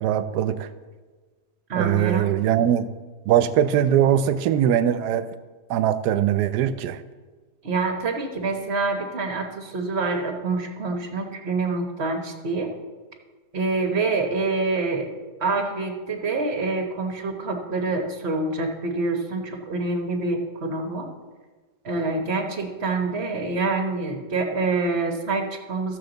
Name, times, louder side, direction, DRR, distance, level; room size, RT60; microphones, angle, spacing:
voice 1, 0.0-0.7 1.7-2.9 3.3-5.3 5.7-7.0, right 10 dB, 85° right, 12 dB, 1.1 m, -21 dB
voice 2, 1.7-2.3 7.6-12.7 13.5-15.1 15.4-21.1 21.8-26.0, right 3 dB, 45° right, 4 dB, 1.2 m, -26 dB
14.0 x 6.9 x 3.9 m, 1.4 s
omnidirectional pair, 1.7 m